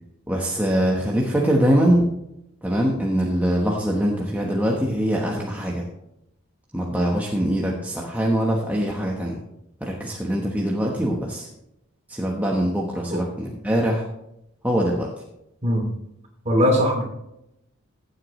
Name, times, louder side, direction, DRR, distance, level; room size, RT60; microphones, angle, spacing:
voice 1, 0.3-2.1 2.6-5.8 6.7-9.4 9.8-11.5 12.1-14.0 14.6-15.1, equal, 5° right, -2 dB, 1.2 m, -23 dB
voice 2, 16.4-17.0, equal, 30° right, 2 dB, 2.7 m, -20 dB
15.5 x 7.9 x 3.2 m, 0.83 s
head